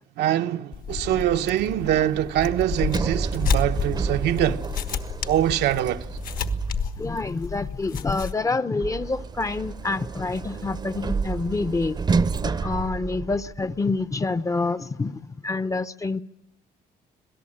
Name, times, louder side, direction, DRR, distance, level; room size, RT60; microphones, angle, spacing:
voice 1, 0.2-4.7 5.2-6.0, right 12 dB, 75° right, 1.0 m, -24 dB
sound 1, 0.7-8.3, left 7 dB, 55° left, 1.5 m, -31 dB
Sliding door, 2.4-7.2 8.8-13.8, right 5 dB, 25° right, 0.8 m, -29 dB
voice 2, 7.0-16.2, left 3 dB, 20° left, 0.8 m, -27 dB
26.0 x 17.5 x 8.7 m
cardioid pair, 110°, 17 cm